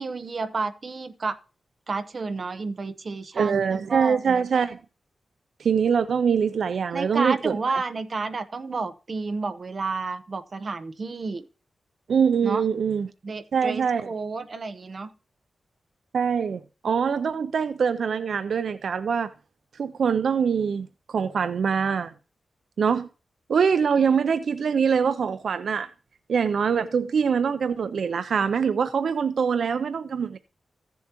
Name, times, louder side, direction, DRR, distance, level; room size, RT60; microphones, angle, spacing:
voice 1, 0.0-1.4 1.9-4.2 6.9-11.4 12.4-12.6 13.2-15.1, right 4 dB, 35° right, 0.7 m, -31 dB
voice 2, 3.4-4.8 5.6-7.6 12.1-13.1 13.5-14.1 16.1-19.3 19.8-22.1 22.8-23.1 23.5-25.9 26.3-30.4, right 6 dB, 70° right, 0.4 m, -24 dB
15.0 x 7.0 x 2.9 m
wide cardioid pair, 180°, 0 cm